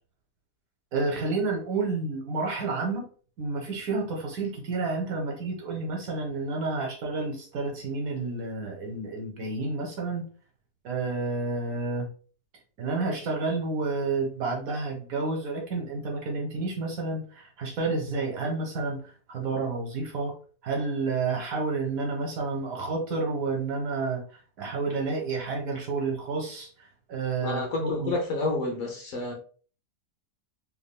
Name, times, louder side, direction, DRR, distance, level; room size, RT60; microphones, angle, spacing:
voice 1, 0.9-3.1 3.4-10.3 10.8-12.1 12.8-20.3 20.6-24.2 24.6-28.1, right 3 dB, 60° right, 1.1 m, -30 dB
voice 2, 27.4-29.3, left 2 dB, 60° left, 1.1 m, -29 dB
3.4 x 2.8 x 2.3 m
omnidirectional pair, 1.8 m